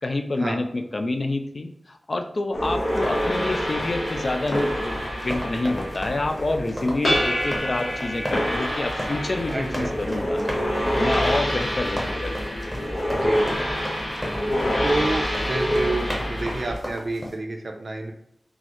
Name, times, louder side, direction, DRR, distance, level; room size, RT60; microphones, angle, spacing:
voice 1, 0.0-10.4 11.0-12.5, left 2 dB, 50° left, 6 dB, 0.3 m, -28 dB
sound 1, 2.5-16.8, equal, 80° left, 1.0 m, -26 dB
sound 2, 2.8-17.3, equal, ahead, 0.8 m, -35 dB
voice 2, 9.5-10.6 11.1-11.6 13.1-14.1 14.8-18.1, right 2 dB, 55° right, 3 dB, 0.5 m, -30 dB
3.8 x 2.1 x 2.9 m, 0.74 s
wide cardioid pair, 90°, 0 cm